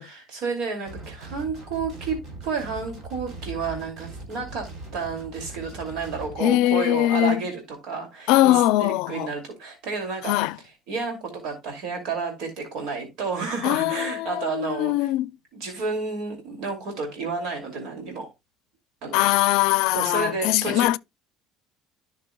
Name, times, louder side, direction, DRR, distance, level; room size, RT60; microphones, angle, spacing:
voice 1, 0.0-15.1 15.5-18.3 19.0-19.2 19.9-20.9, right 4 dB, 75° right, 2.6 m, -31 dB
sound 1, 0.9-6.4, right 2 dB, 55° right, 3.3 m, -40 dB
voice 2, 6.4-7.4 8.3-9.3 10.2-10.6 13.6-15.3 19.1-21.0, left 16 dB, 80° left, 0.4 m, -21 dB
14.0 x 5.9 x 2.3 m
cardioid pair, 125°, 0 cm